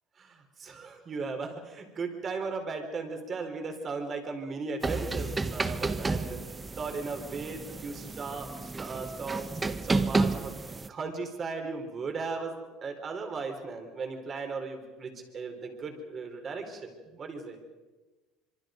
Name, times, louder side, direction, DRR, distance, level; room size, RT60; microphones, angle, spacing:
voice 1, 0.2-10.5 10.9-17.6, right 4 dB, 35° right, 5 dB, 4.3 m, -37 dB
sound 1, 4.8-10.9, right 3 dB, 15° right, 1.0 m, -31 dB
26.0 x 24.0 x 5.3 m, 1.2 s
supercardioid pair, 120°, 0 cm